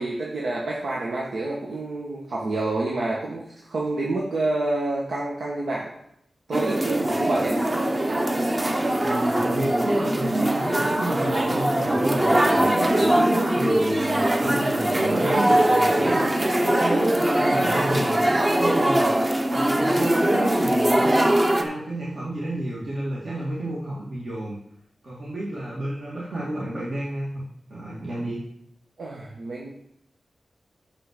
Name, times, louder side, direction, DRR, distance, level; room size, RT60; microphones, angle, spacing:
voice 1, 0.0-5.9 6.5-7.6 12.9-13.2 29.0-29.7, right 2 dB, 85° right, -4 dB, 1.6 m, -28 dB
sound 1, 6.5-21.6, right 1 dB, 25° right, 0.9 m, -21 dB
voice 2, 9.0-16.3 16.6-19.1 19.5-21.3 21.5-24.6 25.0-27.4 27.7-28.4, right 1 dB, 60° right, -7 dB, 2.3 m, -32 dB
6.7 x 5.8 x 6.8 m, 0.74 s
wide cardioid pair, 105°, 0 cm